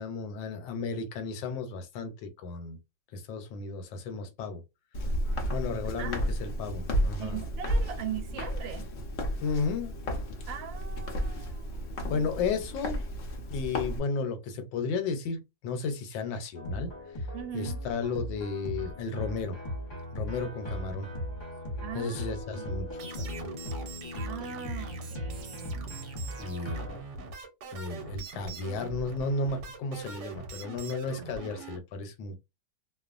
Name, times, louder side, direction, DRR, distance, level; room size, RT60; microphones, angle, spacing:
voice 1, 0.0-2.8 3.1-4.6 5.5-7.4 9.4-10.0 12.1-13.0 13.5-16.9 17.5-19.6 20.1-21.1 21.9-22.9 23.2-23.5 26.4-26.9 27.7-32.4, left 4 dB, 80° left, 1.4 m, -33 dB
Walk footsteps, 4.9-14.0, equal, 65° left, 0.7 m, -32 dB
voice 2, 6.0-6.3 7.2-8.9 10.5-12.3 17.3-17.8 21.8-22.3 22.5-22.7 24.2-26.0, right 9 dB, 85° right, 1.4 m, -40 dB
sound 1, 16.6-27.0, equal, 35° left, 0.9 m, -38 dB
sound 2, 23.0-31.8, right 4 dB, 70° right, 1.2 m, -43 dB
3.0 x 2.2 x 2.4 m
omnidirectional pair, 2.1 m